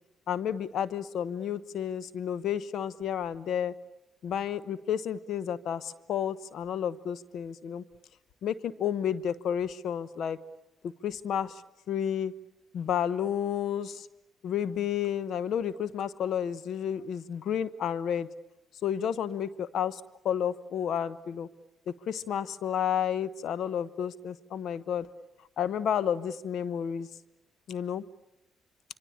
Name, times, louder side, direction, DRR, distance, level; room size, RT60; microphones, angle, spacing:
voice 1, 0.3-3.7 4.2-7.8 8.4-10.4 10.8-11.6 11.9-12.3 12.7-14.1 14.4-18.3 18.8-21.5 21.9-25.1 25.6-27.1 27.7-28.0, left 9 dB, 70° left, 16 dB, 0.9 m, -31 dB
25.5 x 25.5 x 8.6 m, 0.88 s
cardioid pair, 90°, 0 cm